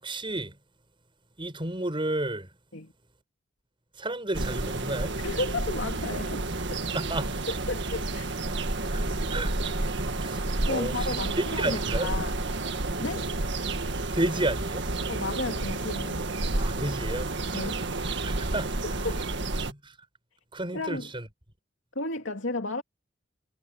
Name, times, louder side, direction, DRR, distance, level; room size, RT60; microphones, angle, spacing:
voice 1, 0.0-0.6 1.4-2.5 4.0-5.2 6.9-7.4 8.9-9.6 10.2-12.1 14.1-14.9 16.6-17.7 18.2-18.8 19.6-19.9 20.5-21.3, right 1 dB, 25° right, 6.4 m, -32 dB
sound 1, 4.3-19.7, right 2 dB, 65° right, 1.7 m, -30 dB
voice 2, 5.2-6.5 7.5-8.3 10.7-12.4 13.0-13.3 15.1-16.2 17.5-17.9 18.2-18.4 18.8-19.2 20.7-21.1 21.9-22.8, left 2 dB, 70° left, 2.9 m, -33 dB
head